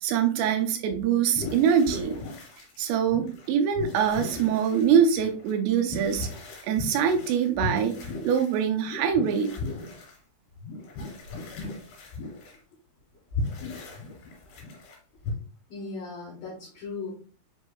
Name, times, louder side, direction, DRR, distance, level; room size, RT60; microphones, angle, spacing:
voice 1, 0.0-2.2 2.8-6.3 6.6-8.0 8.2-9.6, right 8 dB, 80° right, 6 dB, 2.3 m, -24 dB
sound 1, 1.4-2.8 3.1-3.5 3.8-10.2 10.6-12.6 13.2-15.0 15.2-15.3, left 3 dB, 85° left, 3.7 m, -37 dB
voice 2, 15.7-17.1, left 4 dB, 65° left, -7 dB, 2.7 m, -37 dB
7.1 x 2.8 x 2.3 m, 0.40 s
omnidirectional pair, 4.6 m